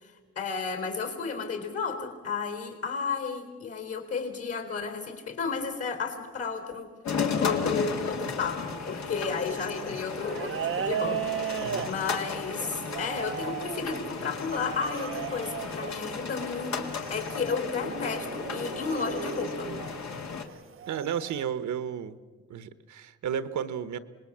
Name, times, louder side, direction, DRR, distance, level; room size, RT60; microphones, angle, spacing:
voice 1, 0.0-6.9 7.4-19.7, left 5 dB, 50° left, 6 dB, 4.1 m, -33 dB
sound 1, 7.0-20.4, left 5 dB, 70° left, 2.2 m, -34 dB
sound 2, 8.8-20.0 20.7-21.4, right 9 dB, 45° right, 0.6 m, -37 dB
voice 2, 20.9-22.2 22.5-24.0, right 8 dB, 75° right, 13 dB, 1.1 m, -33 dB
26.0 x 20.0 x 7.4 m, 1.5 s
cardioid pair, 120°, 29 cm